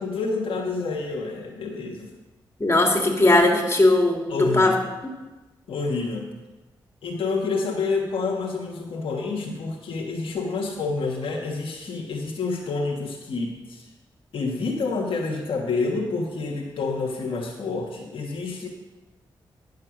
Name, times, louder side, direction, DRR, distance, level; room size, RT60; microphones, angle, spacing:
voice 1, 0.0-2.1 4.3-4.7 5.7-6.3 7.0-13.9 14.3-18.7, left 4 dB, 75° left, 0 dB, 1.3 m, -28 dB
voice 2, 2.6-4.7, left 2 dB, 30° left, 1 dB, 2.5 m, -19 dB
10.0 x 6.5 x 6.2 m, 1.1 s
supercardioid pair, 50°, 9 cm